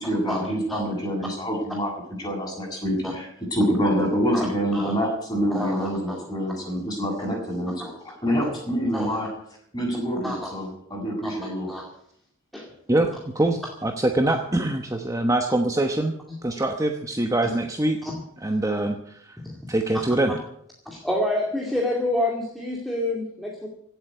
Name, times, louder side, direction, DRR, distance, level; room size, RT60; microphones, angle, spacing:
voice 1, 0.0-1.9 2.2-9.3 9.7-11.7, equal, 20° left, -1 dB, 7.6 m, -26 dB
voice 2, 5.5-6.2 7.8-7.9 8.9-9.2 10.2-10.5 11.2-11.4 11.7-11.8 12.5-12.7 18.0-18.1 19.4-19.6 19.9-20.0 20.9-23.7, left 1 dB, ahead, -2 dB, 2.3 m, -28 dB
voice 3, 12.9-16.1 16.4-18.0 18.4-19.4 19.7-20.3, right 1 dB, 15° right, 4 dB, 1.0 m, -24 dB
17.0 x 8.2 x 9.6 m, 0.72 s
head